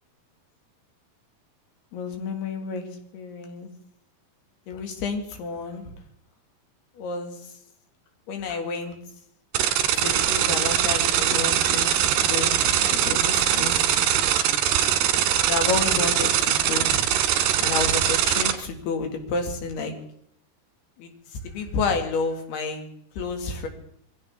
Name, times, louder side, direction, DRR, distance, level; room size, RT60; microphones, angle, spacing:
voice 1, 1.9-2.9 3.1-3.7 4.7-5.8 7.0-7.4 8.3-9.0 10.0-13.8 15.5-17.1 17.6-20.0 21.0-21.1 21.4-22.9 23.2-23.7, left 4 dB, 85° left, 4 dB, 4.0 m, -30 dB
sound 1, 9.5-18.5, right 10 dB, 80° right, 3.2 m, -22 dB
23.5 x 16.0 x 3.6 m, 0.67 s
omnidirectional pair, 4.5 m